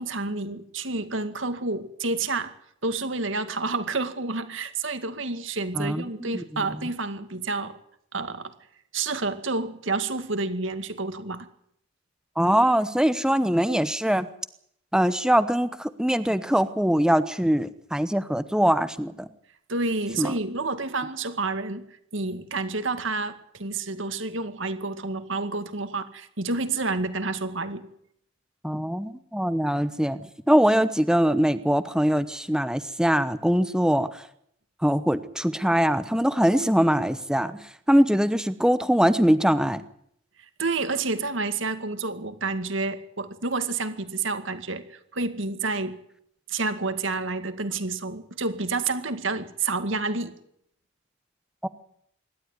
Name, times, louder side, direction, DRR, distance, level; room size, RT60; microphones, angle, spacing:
voice 1, 0.0-2.5 2.8-7.8 8.1-8.5 8.9-11.5 19.7-21.8 22.1-27.9 40.6-46.0 46.5-50.3, right 3 dB, 65° right, 9 dB, 2.1 m, -29 dB
voice 2, 5.7-6.6 12.4-14.3 14.9-19.3 20.2-20.3 28.6-34.2 34.8-39.8 51.6-51.7, equal, 5° right, 12 dB, 1.0 m, -22 dB
25.0 x 12.5 x 9.7 m, 0.72 s
head